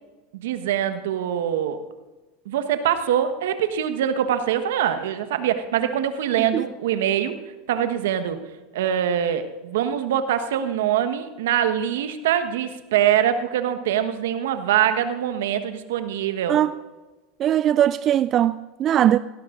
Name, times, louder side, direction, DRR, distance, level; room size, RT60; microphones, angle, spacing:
voice 1, 0.3-1.8 2.5-7.4 7.7-8.4 8.7-16.6, right 10 dB, 75° right, 1.2 m, -23 dB
voice 2, 17.4-19.2, right 11 dB, 40° right, 0.3 m, -20 dB
18.5 x 17.0 x 2.5 m
hypercardioid pair, 90°, 0 cm